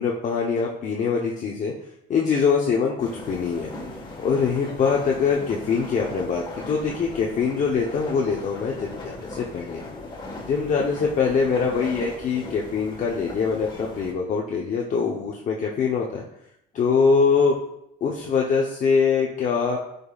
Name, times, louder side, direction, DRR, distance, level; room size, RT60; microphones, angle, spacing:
voice 1, 0.0-1.7 2.1-3.7 4.2-9.8 10.4-16.2 16.7-17.6 18.0-19.8, left 5 dB, 50° left, -1 dB, 0.9 m, -23 dB
sound 1, 3.0-14.1, left 2 dB, 25° left, 1.5 m, -38 dB
11.0 x 5.3 x 2.4 m, 0.79 s
cardioid pair, 110°, 17 cm